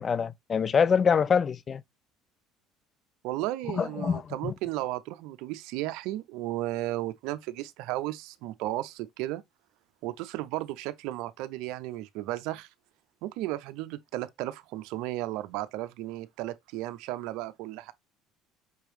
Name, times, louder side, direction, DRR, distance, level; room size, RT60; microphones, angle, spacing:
voice 1, 0.0-1.8 3.7-4.5, left 6 dB, 35° left, 0.4 m, -25 dB
voice 2, 3.2-9.4 10.0-12.7 13.2-17.9, right 16 dB, 75° right, 0.5 m, -34 dB
5.3 x 3.0 x 3.2 m
supercardioid pair, 100°, 0 cm